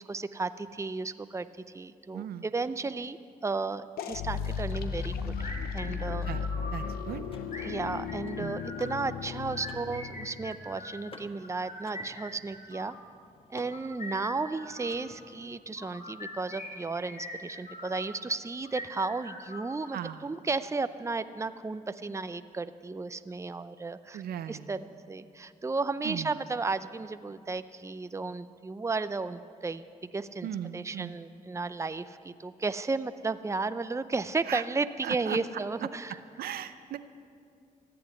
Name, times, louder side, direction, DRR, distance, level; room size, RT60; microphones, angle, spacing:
voice 1, 0.0-1.5 1.7-3.2 3.4-6.3 7.6-13.0 13.5-24.2 24.5-29.8 30.1-30.5 30.7-36.2, right 3 dB, 20° right, 12 dB, 0.6 m, -34 dB
voice 2, 2.1-2.5 6.2-6.4 6.7-7.3 8.4-8.7 19.9-20.3 24.1-24.7 26.0-26.3 30.4-31.2 34.5-34.6 35.0-35.4 36.4-37.0, right 10 dB, 85° right, 11 dB, 0.6 m, -37 dB
sound 1, 4.0-10.6, left 6 dB, 90° left, 0.6 m, -35 dB
sound 2, 5.4-6.9 7.5-8.9 9.4-10.9 11.4-13.0 13.6-15.0 15.7-18.1 18.6-20.1, left 2 dB, 55° left, 4.3 m, -43 dB
Car / Mechanisms, 6.9-15.5, left 2 dB, 35° left, 1.5 m, -55 dB
14.5 x 7.9 x 9.8 m, 2.4 s
supercardioid pair, 55°, 15 cm